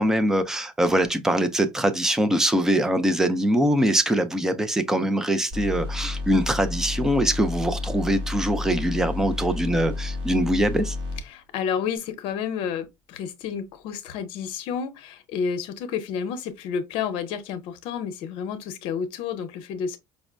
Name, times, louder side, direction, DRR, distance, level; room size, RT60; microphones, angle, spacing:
voice 1, 0.0-11.0, right 1 dB, 5° right, 0.3 m, -23 dB
sound 1, 5.5-11.2, left 3 dB, 75° right, 2.0 m, -31 dB
voice 2, 11.3-20.0, left 7 dB, 60° left, 0.7 m, -30 dB
5.1 x 2.1 x 2.4 m
cardioid pair, 170°, 10 cm